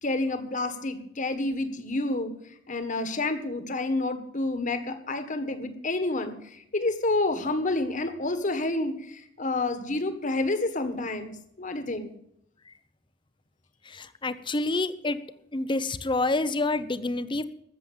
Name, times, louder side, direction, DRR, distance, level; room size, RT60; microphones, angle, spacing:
voice 1, 0.0-2.3 2.7-11.3 11.6-12.1, left 2 dB, 40° left, 9 dB, 1.6 m, -29 dB
voice 2, 13.8-15.2 15.5-17.4, left 2 dB, 25° left, 12 dB, 0.8 m, -28 dB
14.0 x 7.7 x 8.7 m, 0.74 s
head